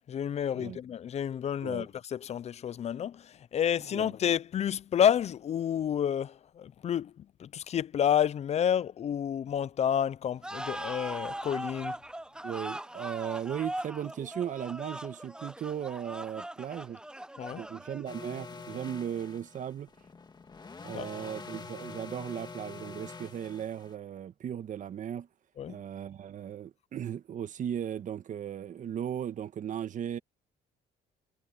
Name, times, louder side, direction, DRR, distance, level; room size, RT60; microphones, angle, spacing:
voice 1, 0.1-7.1 7.4-11.9 17.4-17.6 20.9-21.1 25.6-25.8, left 9 dB, 40° left, 0.5 m, -30 dB
sound 1, 10.4-18.3, right 1 dB, 5° right, 0.9 m, -40 dB
voice 2, 12.4-17.0 17.5-19.9 20.8-25.3 25.7-30.2, right 9 dB, 50° right, 1.4 m, -37 dB
sound 2, 18.1-23.9, left 4 dB, 25° left, 2.0 m, -46 dB
cardioid pair, 110°, 17 cm